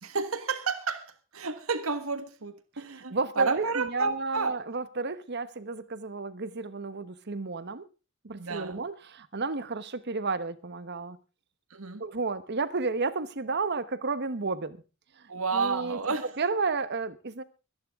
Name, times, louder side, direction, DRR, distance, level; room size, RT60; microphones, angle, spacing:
voice 1, 0.0-4.5 8.4-8.8 11.7-12.0 15.3-16.3, right 4 dB, 80° right, 1.6 m, -31 dB
voice 2, 3.1-7.9 8.2-11.2 12.0-14.8 15.2-16.0 16.4-17.4, right 3 dB, 55° right, 1.1 m, -32 dB
25.0 x 10.5 x 3.6 m
head